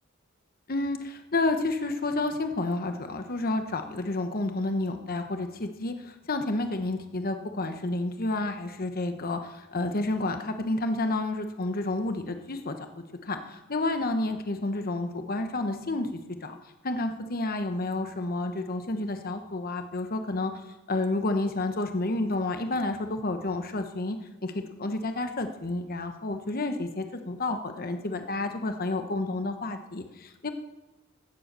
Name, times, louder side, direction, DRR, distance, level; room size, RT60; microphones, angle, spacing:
voice 1, 0.7-16.6 16.8-24.2 24.4-30.5, left 2 dB, 45° left, 7 dB, 1.1 m, -30 dB
16.5 x 7.7 x 6.8 m, 1.0 s
head